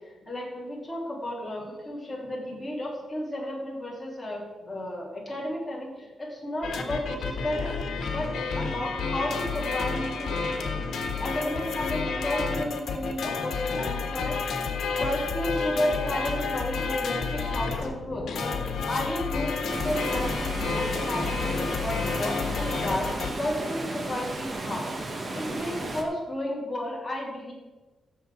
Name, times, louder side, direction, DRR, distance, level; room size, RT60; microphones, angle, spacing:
voice 1, 0.3-7.8 8.1-10.4 11.2-14.4 14.9-23.1 23.4-24.9 25.3-27.5, left 1 dB, 15° left, -5 dB, 3.7 m, -33 dB
sound 1, 6.6-23.3, left 4 dB, 75° left, 1.4 m, -30 dB
Water, 19.7-26.0, right 2 dB, 30° right, 1.4 m, -34 dB
15.5 x 7.1 x 3.9 m, 1.2 s
wide cardioid pair, 135°, 0 cm